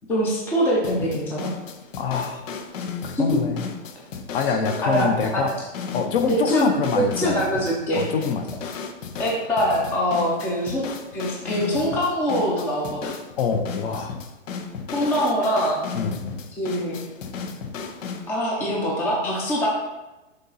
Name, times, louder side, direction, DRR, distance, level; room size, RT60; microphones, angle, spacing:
voice 1, 0.1-1.5 3.1-3.3 4.8-5.5 6.3-8.0 9.2-10.8 11.1-13.1 14.9-15.8 16.6-17.0 18.3-19.7, equal, 5° left, -3 dB, 0.4 m, -23 dB
sound 1, 0.8-18.3, left 5 dB, 85° left, 0.8 m, -35 dB
voice 2, 2.0-2.4 3.0-3.6 4.3-5.5 5.9-7.4 8.0-8.5 13.4-14.2 15.9-16.3, left 6 dB, 45° left, 6 dB, 0.8 m, -25 dB
6.6 x 2.8 x 5.5 m, 1.1 s
hypercardioid pair, 145°, 37 cm